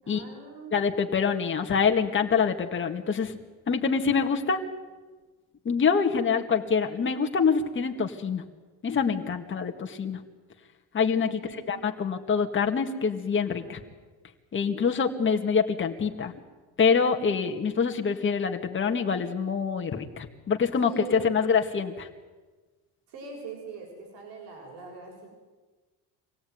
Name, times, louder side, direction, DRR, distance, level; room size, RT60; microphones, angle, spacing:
voice 1, 0.0-0.9 11.3-12.0 13.4-13.8 20.8-21.4 23.1-25.3, right 4 dB, 70° right, 1 dB, 6.8 m, -43 dB
voice 2, 0.7-3.3 3.7-4.6 5.7-8.4 8.8-10.2 10.9-11.4 11.7-13.8 14.5-16.3 16.8-22.1, left 6 dB, 30° left, 3 dB, 2.2 m, -25 dB
25.5 x 17.5 x 9.6 m, 1.3 s
cardioid pair, 140°, 41 cm